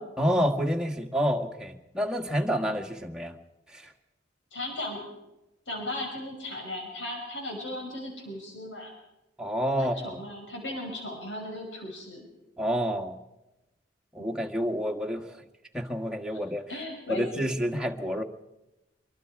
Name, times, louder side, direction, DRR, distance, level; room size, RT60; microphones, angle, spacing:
voice 1, 0.2-3.4 3.7-3.8 9.4-10.2 12.6-13.2 14.1-15.4 15.7-16.7 17.1-18.2, equal, 5° right, 2 dB, 1.6 m, -28 dB
voice 2, 4.5-5.0 5.7-8.9 9.8-12.3 14.2-14.4 16.3-16.4 16.7-17.5, left 1 dB, 80° left, 2 dB, 5.6 m, -37 dB
25.0 x 24.0 x 4.8 m, 0.96 s
head